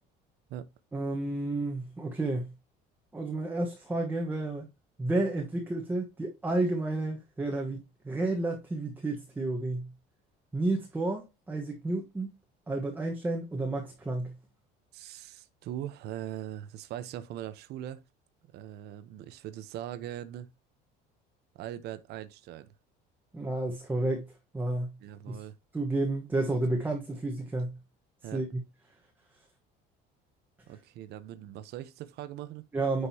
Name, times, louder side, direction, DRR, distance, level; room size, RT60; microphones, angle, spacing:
voice 1, 0.9-2.5 3.1-4.7 5.0-9.9 10.5-12.3 12.7-14.3 23.3-24.3 24.5-24.9 25.3-25.4 25.7-27.8 28.3-28.6 32.7-33.1, right 2 dB, 10° right, 1.3 m, -31 dB
voice 2, 14.9-18.0 18.5-20.5 21.5-22.7 25.0-25.6 28.2-28.4 30.7-32.6, right 11 dB, 55° right, 1.0 m, -41 dB
9.9 x 5.2 x 2.9 m
cardioid pair, 155°, 20 cm